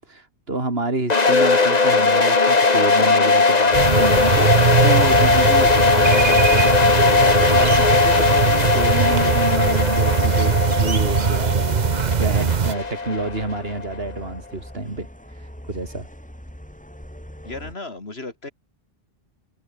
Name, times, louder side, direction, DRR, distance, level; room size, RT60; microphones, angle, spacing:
voice 1, 0.1-16.1, right 2 dB, 75° right, 3.9 m, -28 dB
sound 1, 1.1-14.0, left 4 dB, 40° left, 1.6 m, -18 dB
sound 2, 3.7-12.7, right 6 dB, 45° right, 1.0 m, -21 dB
sound 3, 9.9-17.7, equal, 5° left, 3.9 m, -42 dB
voice 2, 17.4-18.5, left 2 dB, 90° left, 3.7 m, -34 dB
omnidirectional pair, 1.0 m